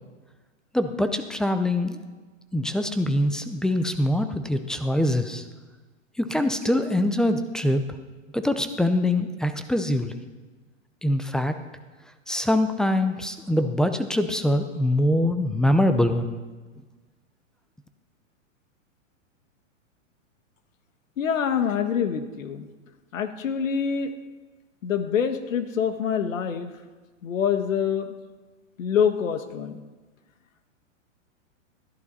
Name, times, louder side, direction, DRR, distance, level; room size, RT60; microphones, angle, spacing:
voice 1, 0.7-2.0 2.5-5.4 6.2-7.8 8.3-10.2 11.0-11.5 12.3-16.4, left 1 dB, ahead, 9 dB, 0.4 m, -23 dB
voice 2, 21.2-22.7 23.1-24.1 24.8-26.7 27.2-28.1 28.8-29.8, left 7 dB, 75° left, 9 dB, 1.6 m, -25 dB
21.5 x 14.0 x 4.1 m, 1.3 s
hypercardioid pair, 130°, 39 cm